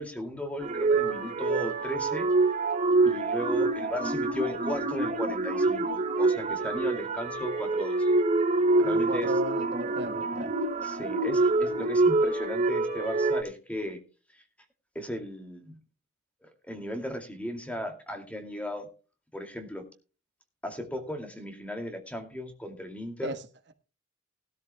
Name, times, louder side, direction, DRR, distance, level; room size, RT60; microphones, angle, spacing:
voice 1, 0.0-2.3 3.0-8.1 8.8-9.3 10.8-14.0 14.3-14.4 14.9-15.8 16.4-18.9 19.3-19.8 20.6-23.3, equal, 5° left, 2.3 m, -36 dB
sound 1, 0.6-13.4, right 3 dB, 35° right, 2.6 m, -26 dB
voice 2, 8.7-10.5 23.2-23.4, right 2 dB, 60° right, 1.3 m, -36 dB
20.0 x 13.0 x 2.2 m
head